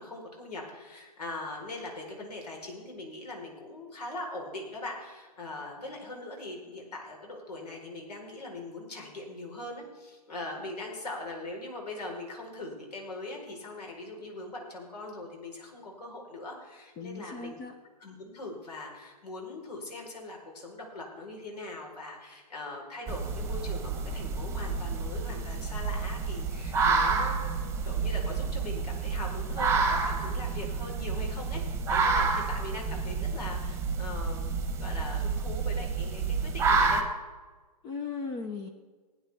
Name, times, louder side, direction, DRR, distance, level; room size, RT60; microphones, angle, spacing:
voice 1, 0.0-17.6 18.0-37.1, left 2 dB, 70° left, 0 dB, 4.6 m, -41 dB
voice 2, 17.0-17.7 37.8-38.7, left 4 dB, 20° left, 7 dB, 0.8 m, -37 dB
sound 1, 23.1-37.0, right 4 dB, 15° right, 1.3 m, -29 dB
18.5 x 9.8 x 3.6 m, 1.4 s
hypercardioid pair, 130°, 21 cm